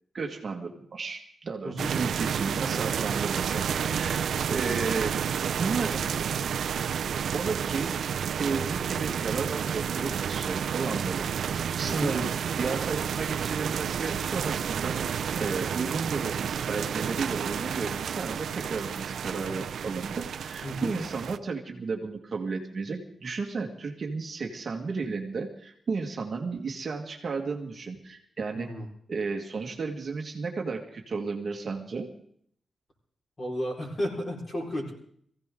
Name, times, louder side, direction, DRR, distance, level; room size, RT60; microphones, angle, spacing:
voice 1, 0.1-5.1 5.6-6.1 7.3-8.0 8.4-28.7 29.1-32.1, right 4 dB, 40° right, 2 dB, 1.9 m, -33 dB
sound 1, 1.8-21.4, right 8 dB, 85° right, 0.6 m, -30 dB
voice 2, 28.6-28.9 33.4-34.9, equal, 25° left, -1 dB, 4.7 m, -33 dB
23.5 x 16.0 x 3.8 m, 0.64 s
wide cardioid pair, 180°, 0 cm